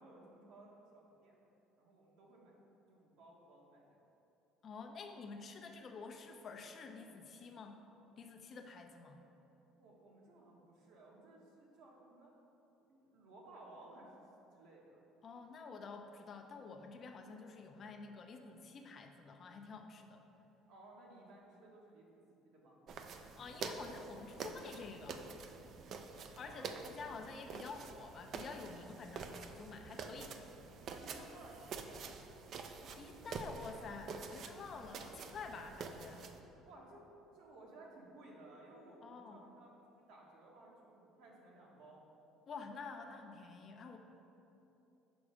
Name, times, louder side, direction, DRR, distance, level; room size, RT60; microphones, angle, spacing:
voice 1, 0.0-1.4 1.8-2.6 2.9-4.1 9.8-12.4 12.8-14.3 14.5-15.0 20.7-22.2 22.4-22.8 26.4-26.8 30.9-32.2 36.7-37.1 37.3-42.0, right 2 dB, 75° right, -3 dB, 1.3 m, -58 dB
voice 2, 4.6-7.8 8.2-9.2 15.2-20.2 23.1-25.3 26.4-30.4 32.6-36.3 39.0-39.5 42.5-44.0, left 4 dB, 40° left, 4 dB, 0.6 m, -49 dB
sound 1, 22.9-36.4, right 5 dB, 50° right, 0.4 m, -47 dB
6.1 x 4.2 x 4.9 m, 3.0 s
cardioid pair, 115°, 0 cm